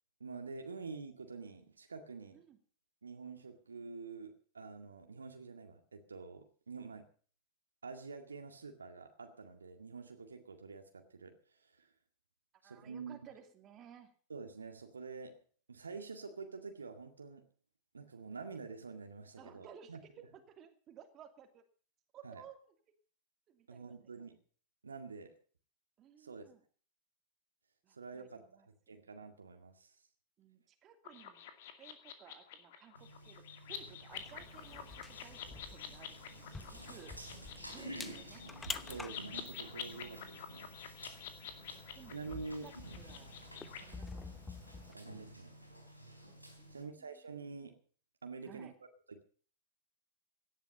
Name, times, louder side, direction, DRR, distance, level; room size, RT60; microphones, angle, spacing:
voice 1, 0.2-2.4 3.0-7.1 7.8-11.9 12.6-13.2 14.3-15.4 15.7-17.4 17.9-20.0 22.2-22.4 23.7-24.4 24.8-25.4 26.2-26.4 27.9-30.0 38.6-40.9 42.1-42.7 44.9-45.6 46.7-47.8 48.2-48.7 49.1-49.2, right 4 dB, 75° right, 5 dB, 2.0 m, -47 dB
voice 2, 12.6-14.2 19.4-21.6 22.1-22.6 23.5-24.1 26.0-26.6 27.8-28.7 30.4-31.4 31.8-35.4 35.7-36.2 36.5-37.1 37.7-38.4 41.4-42.2 42.6-44.4 45.3-45.8 46.6-47.2 48.4-48.7, right 8 dB, 30° right, 5 dB, 2.7 m, -57 dB
sound 1, 31.0-43.8, left 9 dB, 55° left, 2.4 m, -49 dB
sound 2, 32.9-46.8, right 1 dB, 90° left, 3.9 m, -52 dB
sound 3, 34.1-44.9, left 4 dB, 15° left, 1.0 m, -50 dB
17.5 x 12.0 x 5.3 m, 0.44 s
figure-of-eight pair, 90°, 0 cm